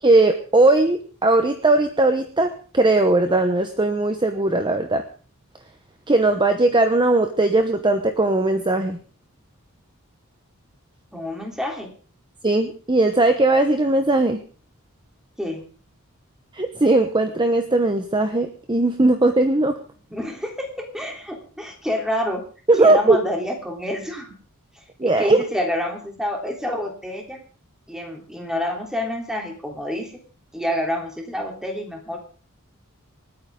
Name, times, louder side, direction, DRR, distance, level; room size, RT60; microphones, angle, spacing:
voice 1, 0.0-5.0 6.1-9.0 12.4-14.4 16.5-19.7 22.7-23.2 25.0-25.4, right 2 dB, 20° right, 7 dB, 1.0 m, -18 dB
voice 2, 11.1-11.9 15.4-15.7 20.1-22.4 22.8-24.3 25.0-27.4 27.9-30.1 30.5-32.2, left 1 dB, 5° right, 1 dB, 3.4 m, -28 dB
28.0 x 9.3 x 3.8 m, 0.39 s
head